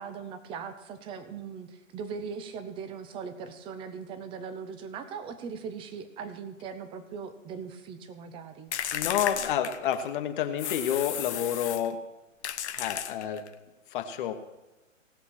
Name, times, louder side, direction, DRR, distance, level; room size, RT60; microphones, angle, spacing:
voice 1, 0.0-8.7, right 6 dB, 15° right, 10 dB, 0.7 m, -40 dB
sound 1, 8.7-10.1 10.6-11.9 12.4-13.5, left 9 dB, 55° left, 1.0 m, -34 dB
voice 2, 8.9-12.0 12.7-13.5 13.9-14.3, left 9 dB, 40° left, 7 dB, 1.3 m, -29 dB
19.0 x 6.9 x 4.5 m, 1.1 s
hypercardioid pair, 135°, 39 cm